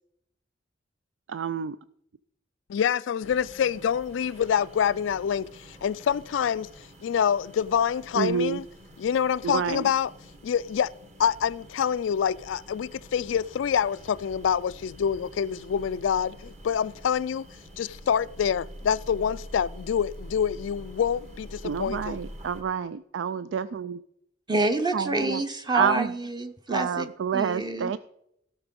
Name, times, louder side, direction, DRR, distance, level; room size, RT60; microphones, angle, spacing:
voice 1, 1.3-1.8 8.2-8.6 9.4-9.9 21.6-24.0 24.9-25.4 25.7-26.1 26.7-28.0, right 7 dB, 75° right, 0.4 m, -28 dB
voice 2, 2.7-6.7 7.0-8.6 9.0-10.1 10.4-10.9 11.2-17.5 17.8-22.2, left 8 dB, 85° left, 0.3 m, -26 dB
sound 1, 3.2-22.6, equal, 40° right, 1.7 m, -46 dB
voice 3, 24.5-27.1 27.3-27.9, right 2 dB, 25° right, 0.8 m, -27 dB
16.0 x 5.9 x 5.2 m
head